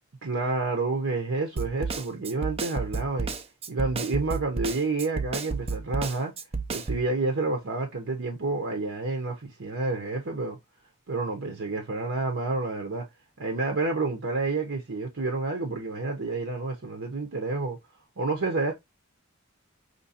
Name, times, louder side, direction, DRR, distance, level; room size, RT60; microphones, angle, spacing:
voice 1, 0.2-3.3 3.7-6.3 6.7-10.6 11.1-13.0 13.4-17.8 18.2-18.7, right 3 dB, 65° right, 0.9 m, -29 dB
Snare drum, 1.6-7.1, right 4 dB, 30° right, 0.5 m, -31 dB
5.2 x 3.0 x 2.8 m
head